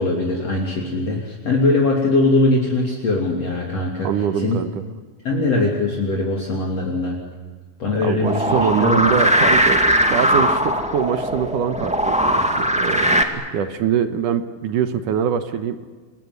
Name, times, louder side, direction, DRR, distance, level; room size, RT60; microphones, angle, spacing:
voice 1, 0.0-4.1 4.4-4.6 5.2-7.2 7.8-9.2, left 2 dB, 45° left, -1 dB, 3.8 m, -21 dB
voice 2, 4.0-4.8 8.0-15.8, right 8 dB, 70° right, 10 dB, 2.5 m, -23 dB
sound 1, 8.2-13.2, equal, 5° right, 1.2 m, -19 dB
29.0 x 21.0 x 9.7 m, 1.5 s
omnidirectional pair, 4.2 m